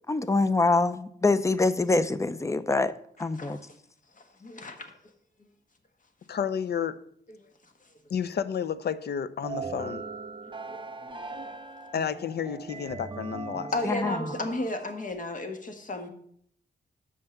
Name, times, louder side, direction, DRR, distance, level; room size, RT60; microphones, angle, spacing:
voice 1, 0.1-2.9 3.2-3.6 13.8-14.3, left 3 dB, 15° left, 0.5 m, -25 dB
voice 2, 4.4-4.9 10.7-11.5 13.7-16.1, left 2 dB, 45° left, 1.4 m, -34 dB
voice 3, 6.3-7.0 8.1-10.1 11.9-13.7, left 7 dB, 65° left, 0.6 m, -31 dB
sound 1, 9.4-15.1, right 4 dB, 25° right, 0.6 m, -39 dB
6.5 x 5.6 x 6.9 m
cardioid pair, 85°, 18 cm